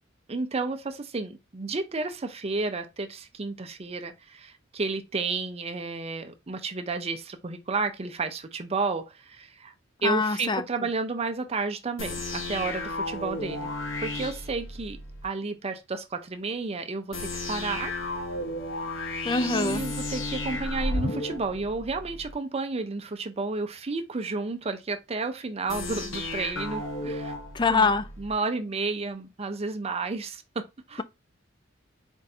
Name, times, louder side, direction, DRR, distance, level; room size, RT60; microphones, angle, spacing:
voice 1, 0.3-9.7 10.0-13.7 14.0-17.9 19.4-27.3 27.7-31.0, right 3 dB, 30° right, 0.5 m, -32 dB
voice 2, 10.0-10.6 19.2-19.8 27.5-28.0, left 4 dB, 25° left, 0.4 m, -24 dB
sound 1, 12.0-15.3 17.1-22.3 25.7-28.3, left 2 dB, 85° left, 1.0 m, -33 dB
4.4 x 2.5 x 4.1 m
head